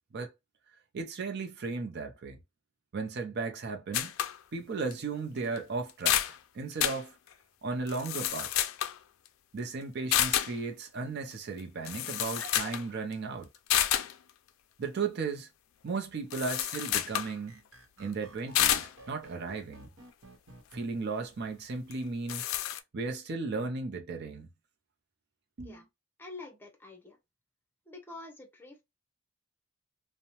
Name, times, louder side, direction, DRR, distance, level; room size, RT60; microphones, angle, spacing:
voice 1, 0.9-2.4 2.9-4.1 4.5-6.2 6.5-7.2 7.6-8.5 9.5-13.5 14.8-15.5 15.8-17.6 18.0-19.9 20.7-22.4 22.9-24.5 25.6-25.8, right 4 dB, 55° right, 0.5 m, -35 dB
sound 1, 3.9-4.4 4.9-5.0 5.6-5.7 5.9-6.4 6.8-7.0 7.9-9.0 10.1-10.6 11.6-11.7 11.9-12.8 13.1-13.2 13.7-14.1 16.3-17.3 18.6-18.9 21.9-22.0 22.3-22.8, left 12 dB, 90° left, 0.3 m, -29 dB
voice 2, 12.4-12.7 25.6-25.9 26.2-27.2 27.9-28.8, left 2 dB, 10° left, 0.7 m, -46 dB
sound 2, 16.5-20.9, right 1 dB, 70° right, 0.9 m, -53 dB
2.7 x 2.0 x 2.9 m
head